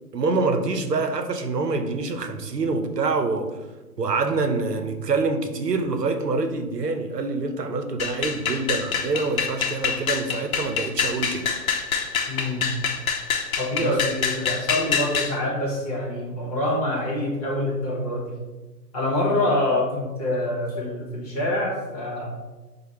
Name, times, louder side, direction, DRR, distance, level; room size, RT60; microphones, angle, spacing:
voice 1, 0.1-3.5 4.0-11.4 13.8-14.0, right 3 dB, 80° right, 7 dB, 0.7 m, -26 dB
sound 1, 8.0-15.3, left 6 dB, 60° left, 0.7 m, -26 dB
voice 2, 12.3-12.7 13.6-18.4 18.9-22.3, left 1 dB, 25° left, -3 dB, 1.0 m, -26 dB
4.9 x 2.2 x 4.2 m, 1.2 s
figure-of-eight pair, 135°, 47 cm